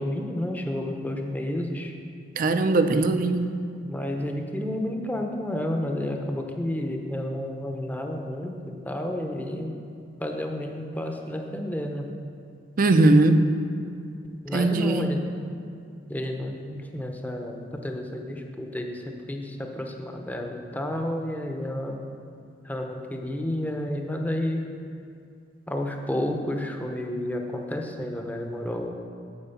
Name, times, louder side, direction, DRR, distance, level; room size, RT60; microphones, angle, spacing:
voice 1, 0.0-1.9 3.8-8.6 8.8-9.7 10.2-12.1 14.4-15.3 16.1-22.0 22.6-24.6 25.7-28.9, left 1 dB, 10° left, 2 dB, 0.7 m, -31 dB
voice 2, 2.4-3.5 12.8-13.4 14.5-15.1, right 2 dB, 50° right, 9 dB, 0.5 m, -20 dB
8.6 x 4.9 x 7.0 m, 2.5 s
head